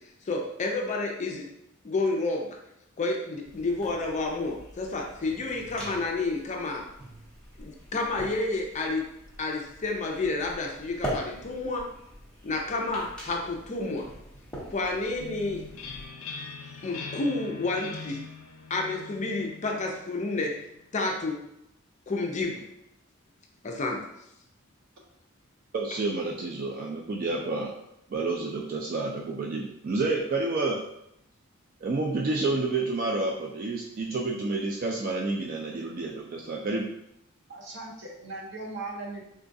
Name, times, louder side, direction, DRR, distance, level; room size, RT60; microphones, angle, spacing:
voice 1, 0.2-1.5 1.8-2.6 3.0-6.9 7.6-9.1 9.4-11.9 12.4-14.1 14.7-15.7 16.4-18.2 18.7-20.6 20.9-21.4 22.1-22.6 23.6-24.0, left 3 dB, 35° left, 1 dB, 0.4 m, -30 dB
sound 1, 3.4-16.1, equal, 5° left, 0.9 m, -43 dB
sound 2, 15.2-20.8, left 5 dB, 90° left, 0.4 m, -42 dB
voice 2, 25.7-27.7 28.1-30.8 31.8-36.9, right 3 dB, 40° right, -1 dB, 0.3 m, -29 dB
voice 3, 37.5-39.2, right 3 dB, 60° right, -1 dB, 0.7 m, -38 dB
3.7 x 2.3 x 2.6 m, 0.79 s
head